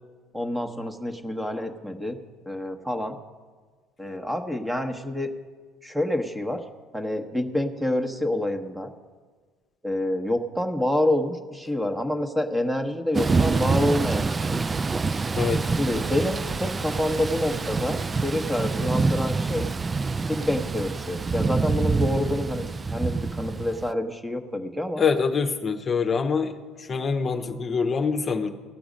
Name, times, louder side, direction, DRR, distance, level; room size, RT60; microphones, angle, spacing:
voice 1, 0.3-2.2 2.4-3.2 4.0-5.3 5.8-6.6 6.9-8.9 9.8-14.6 15.8-19.7 20.3-25.0, left 1 dB, 5° right, 5 dB, 1.1 m, -27 dB
Thunder / Rain, 13.1-23.9, right 4 dB, 25° right, 0.3 m, -26 dB
voice 2, 25.0-28.5, left 5 dB, 35° left, 6 dB, 0.8 m, -25 dB
18.0 x 6.1 x 5.2 m, 1.5 s
supercardioid pair, 85°, 0 cm